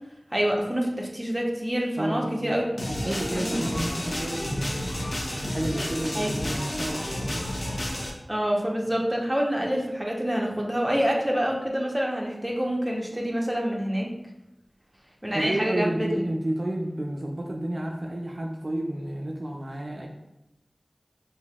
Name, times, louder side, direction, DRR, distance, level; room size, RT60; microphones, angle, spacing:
voice 1, 0.3-2.7 3.0-3.5 6.1-6.3 8.3-14.1 15.2-16.2, equal, 20° right, -1 dB, 0.8 m, -27 dB
voice 2, 2.0-2.6 3.0-7.5 15.3-20.1, right 1 dB, 55° right, -1 dB, 0.4 m, -31 dB
sound 1, 2.8-8.1, left 1 dB, 55° left, 0.7 m, -31 dB
5.2 x 2.7 x 2.3 m, 0.90 s
wide cardioid pair, 45°, 0 cm